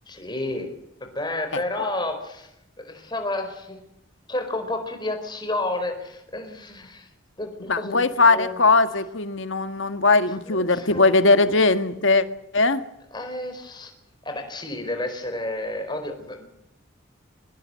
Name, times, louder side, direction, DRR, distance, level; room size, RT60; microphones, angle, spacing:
voice 1, 0.1-0.7 1.0-2.5 2.8-3.8 4.3-7.1 7.4-8.5 10.4-11.7 13.1-13.9 14.2-16.5, left 2 dB, 20° left, 6 dB, 4.4 m, -31 dB
voice 2, 7.7-12.2 12.5-12.8, left 3 dB, 65° left, 10 dB, 1.7 m, -19 dB
24.0 x 21.0 x 7.7 m, 0.85 s
head